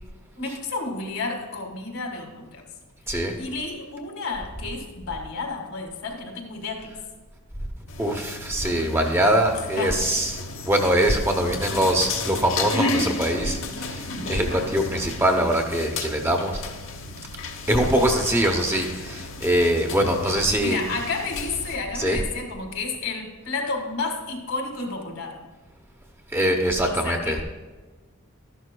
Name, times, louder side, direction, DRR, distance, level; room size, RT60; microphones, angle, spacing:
voice 1, 0.4-2.6 3.3-6.9 9.8-10.0 20.6-25.4 26.8-27.4, left 3 dB, 80° left, 2 dB, 1.7 m, -31 dB
sound 1, 7.9-21.8, left 3 dB, 60° left, 1.0 m, -33 dB
voice 2, 8.0-10.3 10.6-13.6 14.3-16.5 17.7-20.8 22.0-22.2 26.3-27.4, right 1 dB, 10° right, 3 dB, 0.7 m, -22 dB
12.5 x 11.0 x 2.2 m, 1.2 s
head